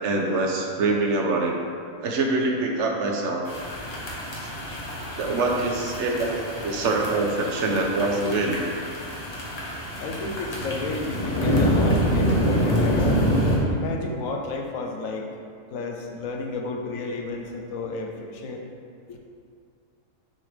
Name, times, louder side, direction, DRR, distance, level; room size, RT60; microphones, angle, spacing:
voice 1, 0.0-1.5 2.0-3.4 4.4-4.5 5.2-8.6, right 3 dB, 65° right, 1 dB, 1.0 m, -24 dB
sound 1, 3.5-13.6, equal, 30° left, 1.0 m, -26 dB
voice 2, 10.0-13.2 13.7-15.3 15.7-18.6 19.1-19.2, left 3 dB, 85° left, 2 dB, 1.2 m, -32 dB
6.4 x 5.5 x 3.3 m, 2.2 s
omnidirectional pair, 1.4 m